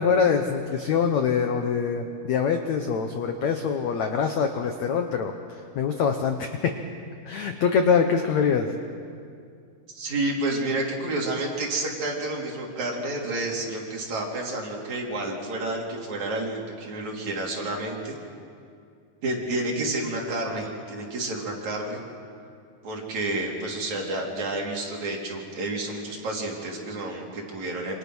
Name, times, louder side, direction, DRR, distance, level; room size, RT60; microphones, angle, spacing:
voice 1, 0.0-5.3 5.8-6.7 7.3-8.7, left 6 dB, 75° left, 6 dB, 1.6 m, -24 dB
voice 2, 9.9-18.2 19.2-22.0 22.8-28.0, right 2 dB, 45° right, -2 dB, 4.3 m, -30 dB
27.5 x 26.0 x 6.3 m, 2.3 s
omnidirectional pair, 4.8 m